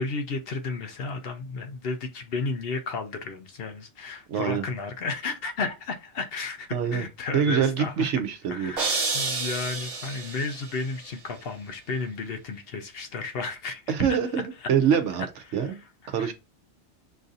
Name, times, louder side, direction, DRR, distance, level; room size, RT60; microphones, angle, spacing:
voice 1, 0.0-8.1 8.5-14.2 14.6-14.7 15.5-16.3, left 4 dB, 60° left, 0.8 m, -33 dB
voice 2, 4.3-4.6 6.7-7.1 7.3-8.7 13.9-14.4 14.7-15.3 15.5-15.8 16.1-16.3, right 7 dB, 80° right, 1.0 m, -24 dB
sound 1, 8.8-10.9, right 4 dB, 55° right, 1.2 m, -29 dB
6.1 x 2.6 x 2.5 m
omnidirectional pair, 1.2 m